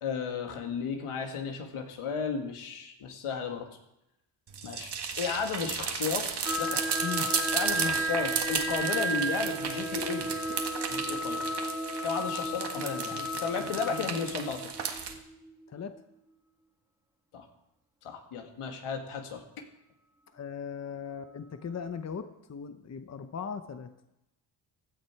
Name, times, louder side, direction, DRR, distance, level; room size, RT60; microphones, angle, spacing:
voice 1, 0.0-3.7 4.6-6.9 7.5-10.4 10.9-11.5 12.0-14.6 17.3-17.5 18.0-19.6, left 5 dB, 85° left, 4 dB, 2.2 m, -34 dB
sound 1, 4.5-15.1, right 6 dB, 55° right, 1.8 m, -34 dB
sound 2, 6.5-16.0, right 1 dB, 5° right, 2.1 m, -34 dB
voice 2, 13.6-14.1 15.7-15.9 20.3-23.9, left 6 dB, 35° left, 9 dB, 0.9 m, -38 dB
16.0 x 12.0 x 4.7 m, 0.87 s
cardioid pair, 120°, 49 cm